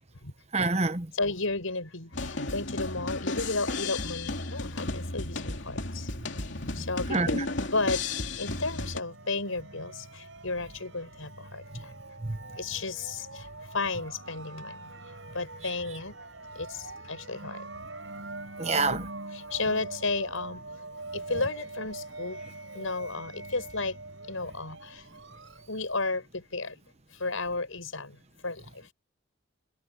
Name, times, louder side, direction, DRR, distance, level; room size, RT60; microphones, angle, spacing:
voice 1, 0.5-1.1 7.1-7.4 12.2-12.4 18.6-19.1, right 3 dB, 30° right, 1.1 m, -27 dB
voice 2, 1.1-6.1 6.7-7.4 7.7-8.0 8.3-11.9 12.5-13.5 13.7-14.9 15.3-16.1 16.5-17.7 18.7-19.0 19.3-20.6 21.1-22.4 22.7-24.0 24.3-25.1 25.7-26.8 27.1-28.2 28.4-28.9, left 3 dB, 90° left, 6.7 m, -33 dB
sound 1, 2.1-9.0, left 2 dB, 65° left, 2.8 m, -34 dB
sound 2, 8.4-25.9, right 2 dB, 70° right, 6.3 m, -43 dB
head